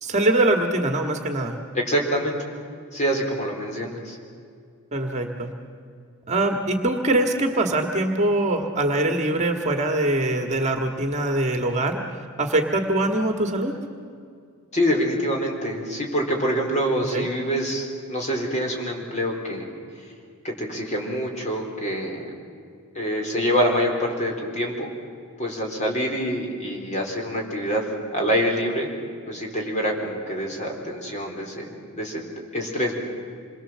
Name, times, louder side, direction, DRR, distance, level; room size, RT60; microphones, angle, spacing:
voice 1, 0.0-1.6 4.9-5.5 6.3-13.8 17.1-17.2, right 1 dB, 30° right, 4 dB, 1.7 m, -23 dB
voice 2, 1.7-2.5 2.9-4.2 14.7-19.6 20.4-22.2 22.9-24.9 25.4-27.8 28.1-28.9 29.3-31.7 32.0-32.2 32.5-33.0, equal, 35° left, 1 dB, 4.1 m, -25 dB
27.5 x 22.0 x 7.5 m, 2.3 s
head